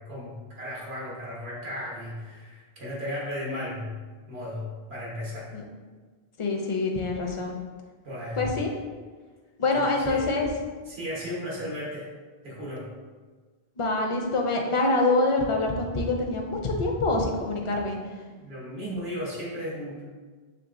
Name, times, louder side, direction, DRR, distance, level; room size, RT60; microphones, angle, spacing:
voice 1, 0.0-4.0 4.3-5.5 8.0-8.6 9.7-10.3 10.8-12.1 12.4-12.9 18.4-20.0, left 1 dB, 90° right, -5 dB, 1.5 m, -35 dB
voice 2, 6.4-7.6 8.4-8.7 9.6-10.5 13.8-18.0, left 2 dB, 40° left, 1 dB, 0.5 m, -25 dB
5.9 x 3.2 x 2.5 m, 1.4 s
omnidirectional pair, 1.0 m